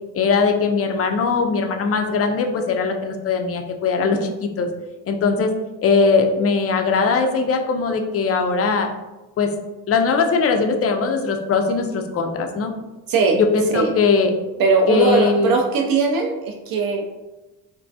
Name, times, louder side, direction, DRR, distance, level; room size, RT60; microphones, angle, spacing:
voice 1, 0.1-4.7 5.1-5.5 5.8-8.9 9.4-9.5 9.9-12.7 13.3-14.3 14.9-15.6, left 4 dB, 35° left, 4 dB, 0.4 m, -20 dB
voice 2, 13.1-13.4 13.7-13.9 14.6-17.1, right 4 dB, 50° right, 3 dB, 0.4 m, -19 dB
2.2 x 2.2 x 2.6 m, 1.1 s
hypercardioid pair, 45°, 46 cm